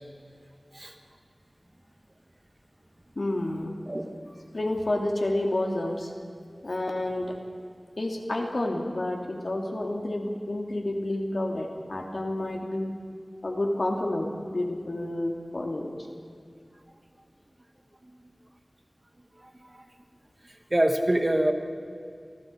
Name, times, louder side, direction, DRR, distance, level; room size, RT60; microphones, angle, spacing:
voice 1, 3.2-3.7 4.5-6.1 6.6-7.4 8.0-12.9 13.4-15.9, left 1 dB, 70° left, 1 dB, 3.0 m, -29 dB
voice 2, 20.7-21.5, right 1 dB, 35° right, 4 dB, 2.2 m, -24 dB
28.5 x 19.0 x 4.8 m, 2.4 s
wide cardioid pair, 55°, 0 cm